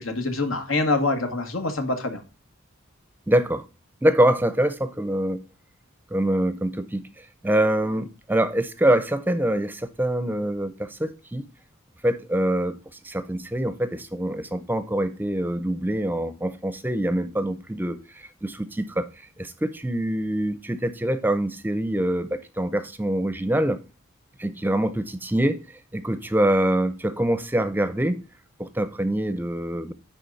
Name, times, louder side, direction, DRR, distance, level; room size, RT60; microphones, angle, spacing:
voice 1, 0.0-2.2, left 2 dB, 85° left, 1.7 m, -25 dB
voice 2, 3.3-3.7 4.0-5.4 6.1-7.1 7.4-11.5 12.0-12.8 13.0-19.1 19.4-23.8 24.4-25.6 25.9-28.2 28.6-29.9, right 1 dB, 10° right, 0.6 m, -24 dB
10.5 x 3.9 x 3.9 m
head